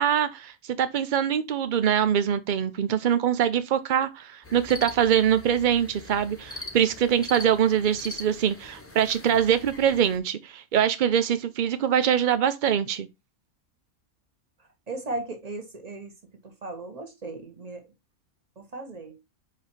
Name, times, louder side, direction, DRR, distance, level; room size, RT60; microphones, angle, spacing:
voice 1, 0.0-13.1, right 9 dB, 75° right, 0.4 m, -23 dB
sound 1, 4.4-10.2, left 2 dB, 10° left, 1.0 m, -42 dB
voice 2, 14.6-16.1 16.4-17.9 18.6-19.2, right 2 dB, 30° right, 1.3 m, -37 dB
5.0 x 4.6 x 4.4 m
omnidirectional pair, 1.5 m